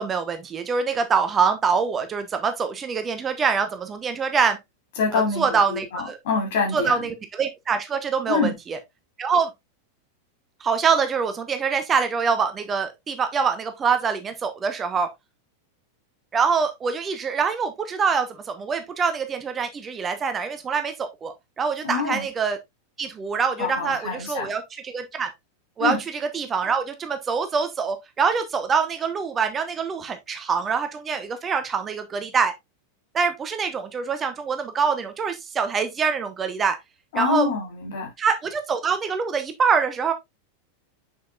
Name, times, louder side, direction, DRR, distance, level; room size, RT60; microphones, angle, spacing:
voice 1, 0.0-4.6 5.1-6.2 6.7-8.8 9.2-9.5 10.6-15.1 16.3-22.6 23.0-25.3 25.8-32.5 33.1-36.8 37.1-37.5 38.2-40.1, right 6 dB, 20° right, 0.9 m, -25 dB
voice 2, 5.0-7.0 8.3-8.5 21.8-22.3 23.6-24.5 25.8-26.0 37.1-38.1, left 5 dB, 55° left, 3.0 m, -26 dB
6.4 x 6.3 x 2.4 m
figure-of-eight pair, 90°, 0 cm